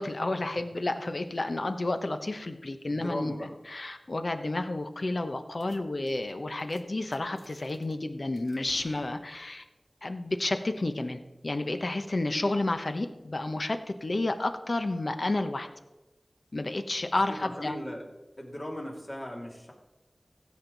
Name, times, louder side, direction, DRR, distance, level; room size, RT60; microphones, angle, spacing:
voice 1, 0.0-9.6 10.0-15.7 16.5-17.7, left 2 dB, 65° left, 8 dB, 0.9 m, -31 dB
voice 2, 2.9-3.5 17.2-18.1 18.4-19.7, equal, 45° left, -1 dB, 2.7 m, -38 dB
sound 1, 5.6-5.8 6.0-6.3 6.6-6.8 7.1-7.9 8.4-9.7, left 1 dB, 80° left, 1.5 m, -55 dB
16.0 x 7.4 x 4.0 m, 1.0 s
wide cardioid pair, 50°, 0 cm